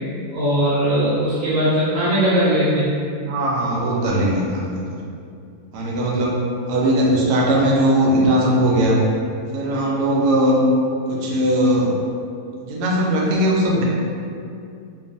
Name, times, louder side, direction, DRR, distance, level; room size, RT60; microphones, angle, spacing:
voice 1, 0.3-2.9, equal, 65° right, -10 dB, 1.0 m, -19 dB
voice 2, 3.2-5.0 5.7-6.4 6.7-9.0 9.5-10.6 11.1-12.0 12.6-13.8, right 1 dB, 85° right, -3 dB, 1.1 m, -19 dB
2.8 x 2.2 x 2.5 m, 2.4 s
omnidirectional pair, 1.7 m